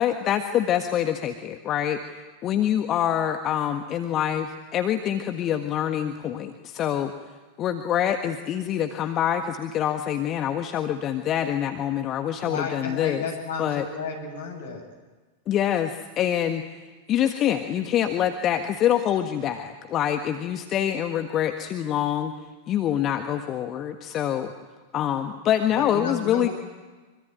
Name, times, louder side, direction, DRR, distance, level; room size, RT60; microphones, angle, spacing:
voice 1, 0.0-2.0 2.4-7.1 7.6-13.2 13.6-13.8 15.5-16.6 17.1-22.3 22.7-24.5 24.9-26.5, left 10 dB, 30° left, 6 dB, 1.6 m, -25 dB
voice 2, 12.4-14.8 25.7-26.5, left 4 dB, 60° left, 4 dB, 7.4 m, -33 dB
25.5 x 25.0 x 9.2 m, 1.3 s
figure-of-eight pair, 90°, 0 cm